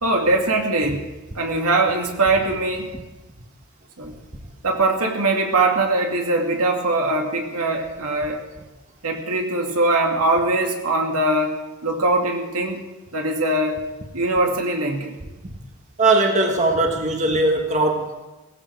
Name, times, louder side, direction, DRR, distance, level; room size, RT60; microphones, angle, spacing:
voice 1, 0.0-1.1 1.3-2.9 4.0-4.2 4.6-8.4 9.0-11.6 11.8-12.8 13.1-13.8 14.1-15.2, right 2 dB, 85° right, 2 dB, 2.3 m, -21 dB
voice 2, 16.0-18.3, right 2 dB, 35° right, 3 dB, 1.6 m, -20 dB
17.0 x 16.0 x 4.7 m, 1.1 s
head